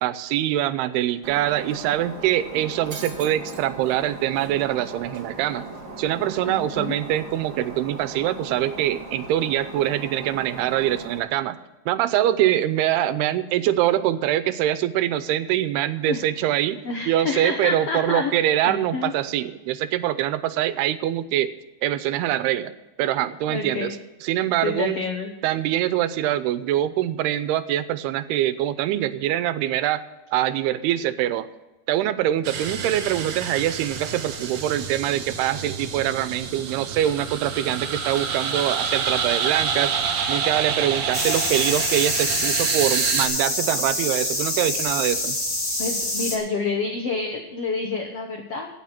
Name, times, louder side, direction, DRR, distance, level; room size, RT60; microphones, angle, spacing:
voice 1, 0.0-5.7 6.0-11.6 11.9-16.8 17.1-21.5 21.8-22.7 23.0-24.0 24.2-25.0 25.4-30.0 30.3-31.5 31.9-39.9 40.3-45.4, right 12 dB, 85° right, 13 dB, 2.7 m, -24 dB
Shatter, 1.2-11.2, right 2 dB, 35° right, 2.4 m, -39 dB
voice 2, 6.4-7.0 16.1-16.5 16.8-18.3 18.6-19.1 23.5-23.9 24.6-25.3 45.8-48.7, left 4 dB, 75° left, 1 dB, 1.3 m, -28 dB
sound 1, 32.4-43.3, right 6 dB, 60° right, 1.9 m, -28 dB
sound 2, 41.1-46.4, left 1 dB, 25° left, 0.8 m, -26 dB
17.0 x 6.3 x 5.8 m, 1.1 s
omnidirectional pair, 4.5 m